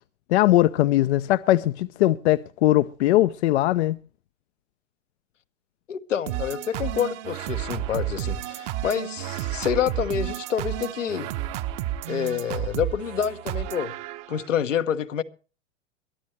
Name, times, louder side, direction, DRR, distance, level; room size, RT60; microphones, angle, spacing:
voice 1, 0.3-4.0, left 15 dB, 65° left, 0.6 m, -20 dB
voice 2, 5.9-11.3 12.1-13.9 14.3-15.2, left 8 dB, 85° left, 1.2 m, -27 dB
sound 1, 6.3-14.5, right 13 dB, 45° right, 1.1 m, -31 dB
22.5 x 13.5 x 3.1 m
hypercardioid pair, 105°, 37 cm